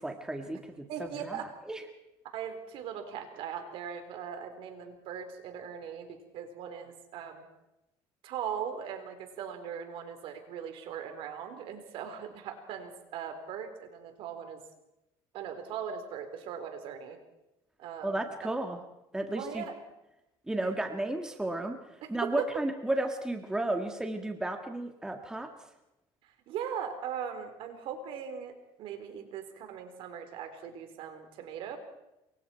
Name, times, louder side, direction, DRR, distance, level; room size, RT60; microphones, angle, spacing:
voice 1, 0.0-1.8 18.0-18.8 19.1-19.6 20.5-25.5, right 1 dB, 5° right, 4 dB, 1.8 m, -33 dB
voice 2, 0.9-1.5 2.3-7.5 8.2-14.6 15.3-17.2 17.8-18.5 19.3-19.8 20.6-20.7 22.0-22.1 22.4-22.6 26.2-28.5 28.8-31.8, right 8 dB, 60° right, 7 dB, 4.2 m, -39 dB
28.0 x 23.5 x 4.6 m, 0.91 s
cardioid pair, 140°, 10 cm